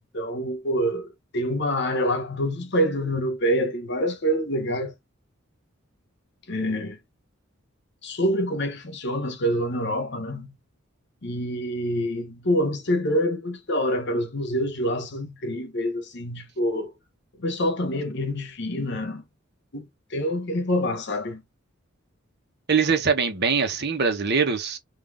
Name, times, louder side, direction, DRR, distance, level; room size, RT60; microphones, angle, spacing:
voice 1, 0.0-4.9 6.5-7.0 8.0-10.5 11.2-16.9 17.4-19.2 19.7-21.4, equal, 60° left, 1.0 m, -26 dB
voice 2, 22.7-24.8, right 5 dB, 55° right, 1.1 m, -22 dB
3.9 x 2.7 x 3.6 m
head